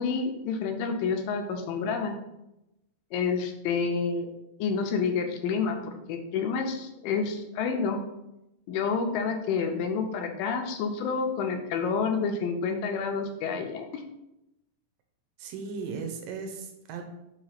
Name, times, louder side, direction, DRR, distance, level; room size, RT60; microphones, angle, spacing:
voice 1, 0.0-2.1 3.1-4.3 4.6-8.0 8.7-14.0, left 5 dB, 80° left, 4 dB, 2.2 m, -29 dB
voice 2, 15.4-17.0, right 5 dB, 80° right, 5 dB, 2.3 m, -36 dB
5.8 x 3.2 x 5.7 m, 0.90 s
omnidirectional pair, 4.1 m